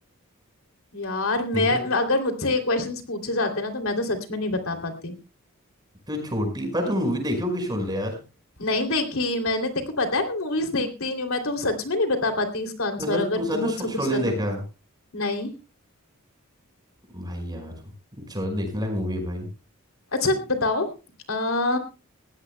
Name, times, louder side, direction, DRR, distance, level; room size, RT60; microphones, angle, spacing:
voice 1, 0.9-5.1 8.6-14.3 15.1-15.6 20.1-20.9 21.3-21.8, left 2 dB, 80° left, 5 dB, 3.0 m, -26 dB
voice 2, 6.1-8.2 13.0-14.6 17.1-17.7 18.3-19.5, equal, 20° right, 4 dB, 5.3 m, -27 dB
20.5 x 16.5 x 2.2 m, 0.31 s
head